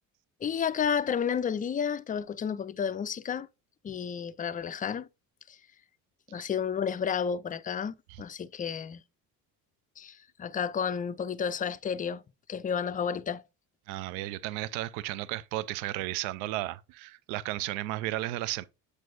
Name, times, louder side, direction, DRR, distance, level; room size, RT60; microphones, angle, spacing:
voice 1, 0.4-3.5 3.8-5.1 5.5-5.6 6.3-9.0 10.0-12.2 12.5-13.4, left 7 dB, 20° left, 0.3 m, -31 dB
voice 2, 13.9-18.7, right 16 dB, 75° right, 0.5 m, -34 dB
7.5 x 4.9 x 2.6 m
hypercardioid pair, 60°, 44 cm